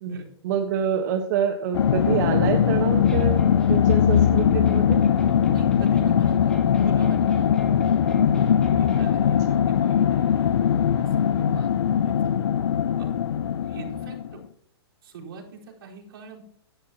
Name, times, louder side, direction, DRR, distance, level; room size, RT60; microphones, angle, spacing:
voice 1, 0.0-5.0, right 8 dB, 40° right, 4 dB, 1.3 m, -27 dB
sound 1, 1.7-14.3, left 9 dB, 70° left, 0.6 m, -21 dB
sound 2, 3.0-9.1, left 2 dB, 5° left, 2.2 m, -35 dB
voice 2, 5.5-7.7 8.3-11.7 12.0-12.3 13.0-13.3 13.5-14.4 15.0-16.4, right 5 dB, 65° right, -2 dB, 4.5 m, -43 dB
16.5 x 11.5 x 2.9 m, 0.72 s
hypercardioid pair, 150°, 14 cm